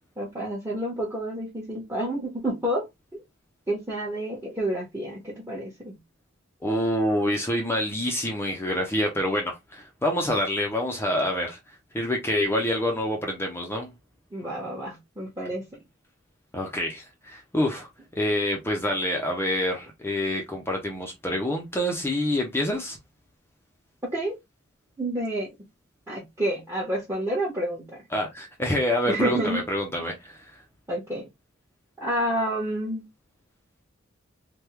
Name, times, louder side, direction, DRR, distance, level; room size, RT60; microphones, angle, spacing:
voice 1, 0.2-2.9 3.1-3.2 3.7-6.0 14.3-15.6 24.0-24.4 25.0-25.5 26.1-27.8 29.1-29.6 30.9-31.2 32.0-33.0, right 1 dB, 15° right, 1.0 m, -29 dB
voice 2, 6.6-11.6 11.9-13.9 16.5-17.9 18.2-23.0 28.1-30.6, left 1 dB, 10° left, 0.6 m, -27 dB
3.4 x 2.2 x 2.9 m
head